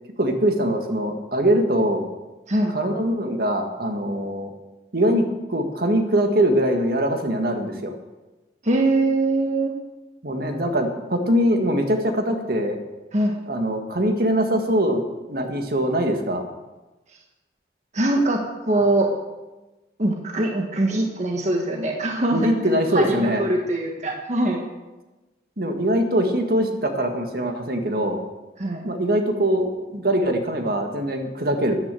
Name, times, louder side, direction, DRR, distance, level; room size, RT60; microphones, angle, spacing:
voice 1, 0.2-2.1 2.7-4.5 4.9-7.9 10.2-12.8 13.5-16.5 22.3-23.4 25.6-28.2 28.8-31.8, right 1 dB, 55° right, 5 dB, 1.7 m, -22 dB
voice 2, 8.6-9.7 13.1-13.3 17.9-18.4 18.7-19.1 20.0-22.5 22.9-24.6 28.6-28.8, right 2 dB, 40° right, 2 dB, 1.4 m, -22 dB
13.5 x 9.8 x 7.6 m, 1.1 s
head